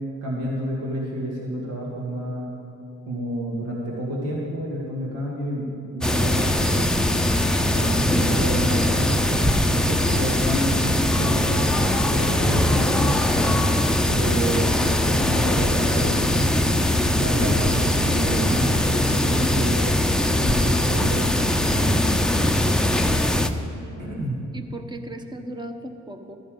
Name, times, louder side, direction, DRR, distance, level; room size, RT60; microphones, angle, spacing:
voice 1, 0.2-2.5 3.0-6.9 7.7-9.2 9.7-13.6 14.1-19.9 20.2-22.2 24.0-24.4, equal, 85° right, -3 dB, 2.2 m, -29 dB
sound 1, 6.0-23.5, left 1 dB, ahead, 0.6 m, -21 dB
voice 2, 23.8-24.3 24.5-26.4, right 1 dB, 15° right, 6 dB, 1.0 m, -37 dB
14.0 x 12.5 x 3.9 m, 2.8 s
cardioid pair, 90°, 30 cm